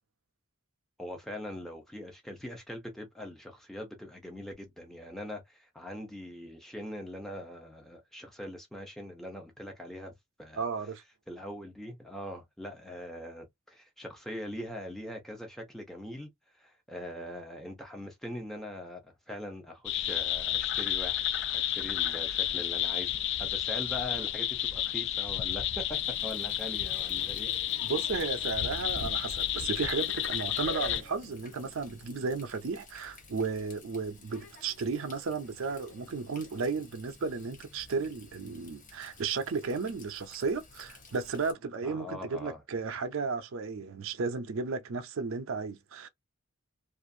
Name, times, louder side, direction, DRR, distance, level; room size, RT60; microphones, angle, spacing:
voice 1, 1.0-10.1 10.4-10.6 11.3-16.3 16.6-21.2 21.5-27.5 41.8-42.6, left 1 dB, ahead, 0.6 m, -42 dB
voice 2, 10.6-11.0 27.8-46.1, right 4 dB, 65° right, 0.5 m, -34 dB
sound 1, 19.9-31.0, left 11 dB, 55° left, 0.3 m, -31 dB
Water tap faucet, 25.9-41.5, left 1 dB, 35° left, 0.7 m, -51 dB
2.5 x 2.4 x 2.5 m
head